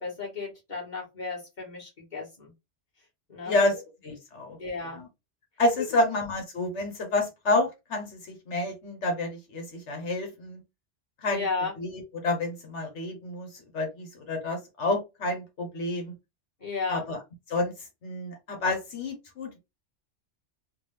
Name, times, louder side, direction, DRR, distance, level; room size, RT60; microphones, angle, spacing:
voice 1, 0.0-2.5 3.3-3.6 4.6-5.0 11.3-11.7 16.6-17.0, left 4 dB, 40° left, -3 dB, 1.8 m, -33 dB
voice 2, 3.4-3.8 4.0-4.6 4.9-5.1 5.6-10.6 11.2-11.5 11.8-16.1 16.9-17.2 17.5-19.6, left 2 dB, 75° left, 4 dB, 1.3 m, -29 dB
3.7 x 2.5 x 3.2 m, 0.23 s
omnidirectional pair, 1.2 m